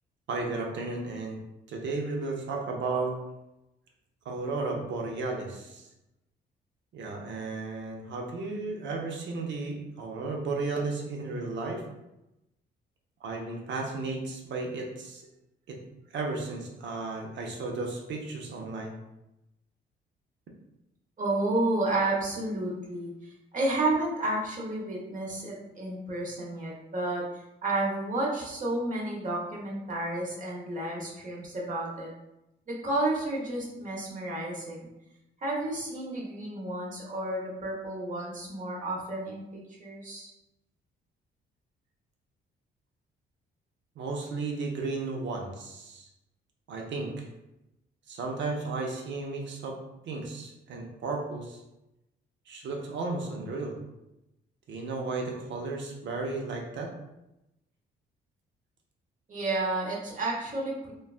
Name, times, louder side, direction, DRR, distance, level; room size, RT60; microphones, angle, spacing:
voice 1, 0.3-1.4 1.7-3.1 4.2-5.9 6.9-11.8 13.2-15.2 15.7-15.8 16.1-18.9 44.0-46.1 46.7-47.2 48.1-49.8 50.1-51.6 52.5-53.8 54.7-56.9, right 3 dB, 65° right, 1 dB, 0.7 m, -34 dB
voice 2, 21.2-32.1 32.7-34.9 35.4-39.4 39.7-40.3 59.3-60.9, right 2 dB, 40° right, -4 dB, 1.0 m, -31 dB
3.1 x 2.2 x 2.4 m, 0.92 s
cardioid pair, 90°, 20 cm